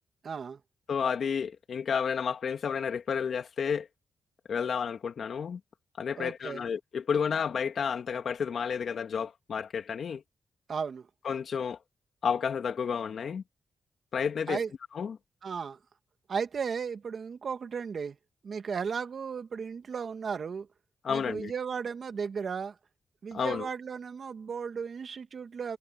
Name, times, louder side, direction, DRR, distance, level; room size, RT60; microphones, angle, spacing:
voice 1, 0.2-0.6 6.2-6.6 10.7-11.1 14.5-14.7 15.4-15.8 16.3-18.2 18.4-20.7 21.1-22.8 23.2-25.8, right 6 dB, 60° right, 2.1 m, -35 dB
voice 2, 0.9-3.9 4.5-5.6 6.0-10.2 11.2-11.8 12.2-13.4 14.1-14.6 14.9-15.2 21.0-21.5 23.3-23.7, left 6 dB, 65° left, 2.9 m, -31 dB
cardioid pair, 75°, 0 cm